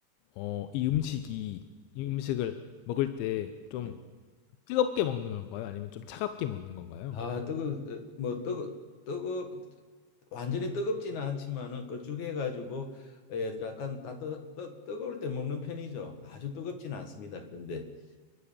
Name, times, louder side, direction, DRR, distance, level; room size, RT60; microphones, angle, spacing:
voice 1, 0.4-1.6 2.0-2.6 2.9-4.0 4.7-7.2, left 12 dB, 85° left, 9 dB, 3.2 m, -32 dB
voice 2, 7.1-8.7 9.1-9.6 10.3-12.9 13.3-17.8, left 4 dB, 55° left, 5 dB, 2.5 m, -35 dB
29.5 x 12.0 x 8.8 m, 1.4 s
omnidirectional pair, 5.2 m